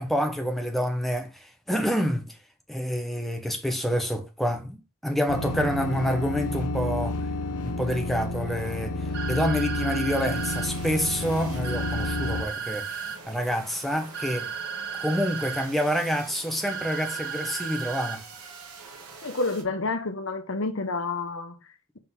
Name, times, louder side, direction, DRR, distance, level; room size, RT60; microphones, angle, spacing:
voice 1, 0.0-2.4 2.7-7.2 7.6-14.5 15.0-18.2, equal, ahead, 1.1 m, -28 dB
sound 1, 5.3-12.4, left 2 dB, 90° left, 0.8 m, -30 dB
sound 2, 9.1-10.7 11.6-13.2 14.1-15.7 16.6-18.2, right 7 dB, 50° right, 1.4 m, -34 dB
sound 3, 10.2-19.6, right 4 dB, 90° right, 2.0 m, -45 dB
voice 2, 19.2-22.0, left 3 dB, 60° left, 1.2 m, -30 dB
5.8 x 5.2 x 3.8 m
head